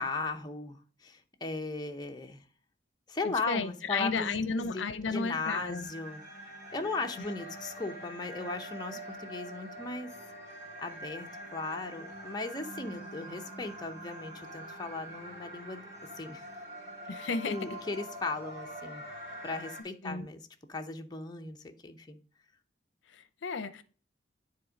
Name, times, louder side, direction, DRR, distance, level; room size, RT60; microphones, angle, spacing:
voice 1, 0.0-2.4 3.1-4.8 5.1-6.2 6.7-10.1 10.8-15.9 16.2-16.5 17.5-19.0 19.4-20.4 20.7-22.2, left 3 dB, 20° left, 0.7 m, -37 dB
voice 2, 3.2-5.9 17.1-17.6 20.0-20.3 23.1-23.8, left 4 dB, 75° left, 0.6 m, -33 dB
sound 1, 5.5-19.8, right 1 dB, 15° right, 2.7 m, -45 dB
9.7 x 3.6 x 5.1 m
head